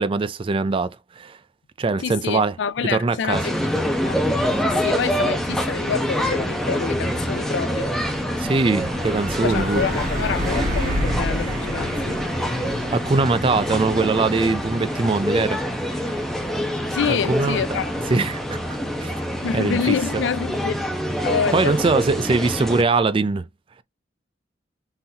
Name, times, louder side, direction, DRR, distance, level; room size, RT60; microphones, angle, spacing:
voice 1, 0.0-1.4 1.8-2.5 2.8-3.4 8.4-9.8 12.9-16.1 17.1-17.6 18.1-18.6 19.0-19.2 19.5-20.0 21.5-23.5, right 3 dB, 30° right, 0.4 m, -22 dB
voice 2, 2.0-3.5 4.0-4.2 4.6-8.0 9.4-12.2 16.9-17.9 19.4-20.7 21.2-21.8, left 7 dB, 70° left, 0.4 m, -27 dB
sound 1, 3.3-22.8, equal, ahead, 0.9 m, -26 dB
Truck, 6.1-20.3, equal, 50° right, 2.1 m, -32 dB
4.1 x 3.9 x 2.8 m
head